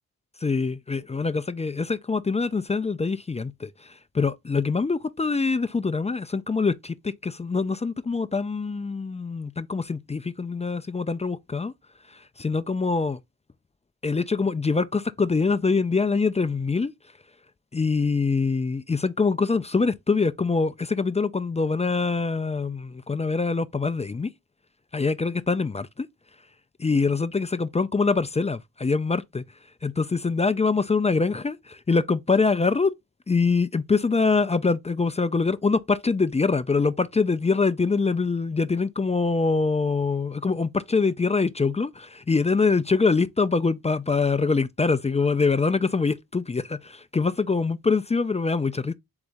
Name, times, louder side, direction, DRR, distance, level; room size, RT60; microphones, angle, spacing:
voice 1, 0.4-11.7 12.1-13.2 14.0-16.9 17.7-24.3 24.9-26.1 26.8-29.4 29.8-32.9 33.3-48.9, left 4 dB, 20° left, 0.3 m, -24 dB
4.0 x 3.5 x 3.3 m
cardioid pair, 50°, 36 cm